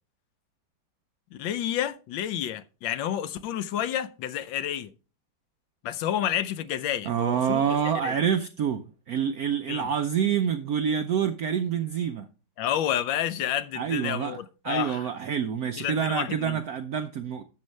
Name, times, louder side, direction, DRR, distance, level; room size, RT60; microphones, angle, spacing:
voice 1, 1.3-4.9 5.8-7.6 8.0-8.1 9.7-9.9 12.6-15.1 15.8-16.6, left 11 dB, 75° left, 1.3 m, -30 dB
voice 2, 7.0-12.3 13.8-14.4 14.6-17.4, right 8 dB, 75° right, 0.8 m, -27 dB
12.0 x 7.5 x 3.2 m
omnidirectional pair, 2.2 m